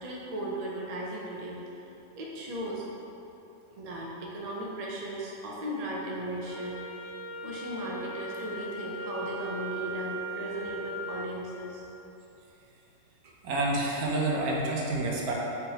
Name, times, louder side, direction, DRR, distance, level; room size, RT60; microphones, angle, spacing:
voice 1, 0.0-1.7 2.2-2.9 3.8-6.8 7.4-11.8, right 1 dB, 65° right, -3 dB, 0.4 m, -36 dB
Wind instrument woodwind instrument, 6.4-11.3, right 1 dB, 65° left, 0.8 m, -38 dB
voice 2, 13.4-15.3, right 2 dB, 85° right, -3 dB, 1.2 m, -28 dB
5.0 x 3.3 x 2.8 m, 2.9 s
omnidirectional pair, 1.5 m